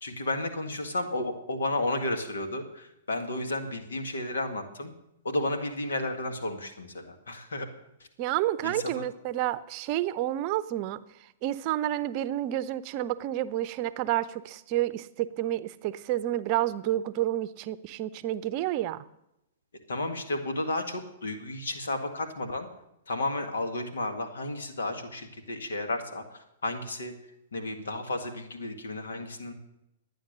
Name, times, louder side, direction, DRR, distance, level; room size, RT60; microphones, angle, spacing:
voice 1, 0.0-4.9 5.2-7.7 8.6-9.1 19.9-22.7 23.1-27.1 27.5-29.5, left 2 dB, 80° left, 6 dB, 1.9 m, -32 dB
voice 2, 8.2-11.0 11.4-19.0, right 13 dB, 40° right, 16 dB, 0.6 m, -30 dB
12.0 x 9.2 x 6.7 m, 0.85 s
hypercardioid pair, 120°, 0 cm